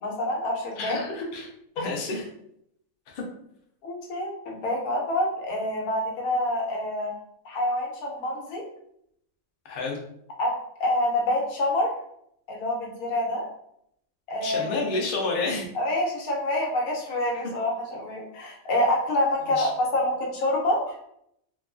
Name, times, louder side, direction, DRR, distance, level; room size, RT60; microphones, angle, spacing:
voice 1, 0.0-1.0 3.8-7.1 7.4-8.6 10.4-10.5 10.8-11.9 12.5-13.4 14.3-14.9 15.7-21.0, left 1 dB, 80° left, -1 dB, 1.2 m, -27 dB
voice 2, 0.8-1.5 1.8-2.2 3.1-3.2 9.6-10.0 14.4-15.7 19.5-19.7, left 3 dB, 55° left, -1 dB, 0.6 m, -30 dB
3.0 x 2.3 x 2.4 m, 0.74 s
omnidirectional pair, 1.5 m